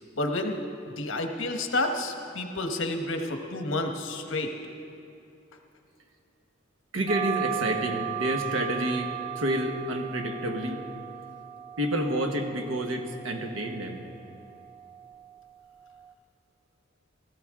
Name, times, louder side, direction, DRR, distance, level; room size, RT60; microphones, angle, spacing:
voice 1, 0.1-0.6 1.0-4.5, left 2 dB, 75° left, 4 dB, 1.2 m, -30 dB
voice 2, 6.9-10.8 11.8-14.0, right 1 dB, 80° right, 4 dB, 1.3 m, -29 dB
sound 1, 7.1-16.1, right 11 dB, 25° right, 0.3 m, -37 dB
18.0 x 13.5 x 3.8 m, 2.7 s
head